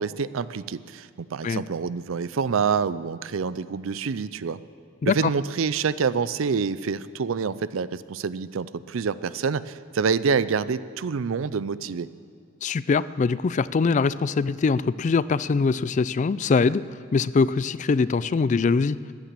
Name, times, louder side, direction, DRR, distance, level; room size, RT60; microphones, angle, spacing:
voice 1, 0.0-4.6 5.1-12.1, right 5 dB, 80° right, 16 dB, 0.5 m, -27 dB
voice 2, 12.6-16.8 17.1-19.0, left 4 dB, 35° left, 17 dB, 0.3 m, -22 dB
14.5 x 10.0 x 7.5 m, 2.4 s
head